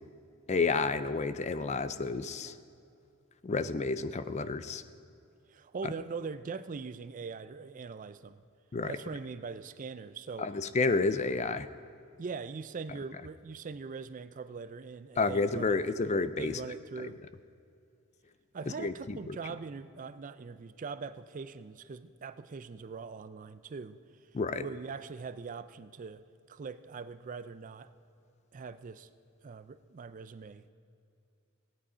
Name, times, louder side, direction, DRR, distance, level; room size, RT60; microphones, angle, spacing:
voice 1, 0.5-2.5 3.4-4.8 8.7-8.9 10.4-11.7 15.2-16.6 18.8-19.4 24.3-24.6, left 3 dB, 30° left, 13 dB, 0.4 m, -30 dB
voice 2, 5.5-8.4 8.9-10.5 12.2-15.8 16.0-16.1 16.4-17.2 18.5-24.0 24.6-26.2 26.5-27.9 28.5-29.1 29.4-30.7, right 5 dB, 35° right, 14 dB, 0.4 m, -42 dB
17.0 x 9.8 x 5.0 m, 2.6 s
head